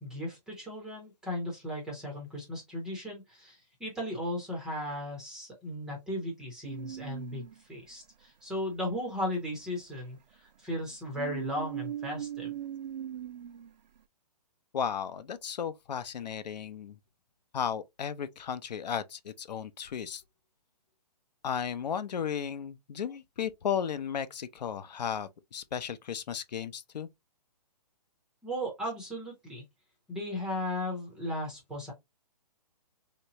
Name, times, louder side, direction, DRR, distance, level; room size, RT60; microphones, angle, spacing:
voice 1, 0.0-12.5 28.4-29.6 30.1-31.9, left 1 dB, 5° right, 0.5 m, -36 dB
sound 1, 6.6-7.8 10.8-14.0, right 11 dB, 90° right, 0.4 m, -39 dB
voice 2, 14.7-17.0 17.5-20.2 21.4-27.1, left 8 dB, 80° left, 0.6 m, -34 dB
3.2 x 2.9 x 2.8 m
hypercardioid pair, 165°, 21 cm